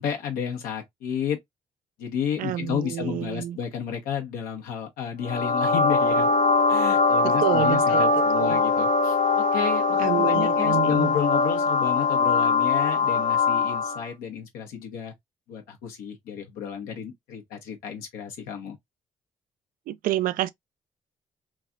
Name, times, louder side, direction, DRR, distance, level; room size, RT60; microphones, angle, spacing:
voice 1, 0.0-1.4 2.0-6.3 6.7-15.1 15.5-18.8, left 8 dB, 85° left, 0.9 m, -32 dB
voice 2, 2.4-3.6 7.2-8.6 10.0-11.2 19.9-20.5, right 13 dB, 70° right, 0.4 m, -28 dB
sound 1, 5.2-14.1, left 4 dB, 60° left, 0.7 m, -22 dB
3.2 x 2.4 x 2.5 m
supercardioid pair, 60°, 15 cm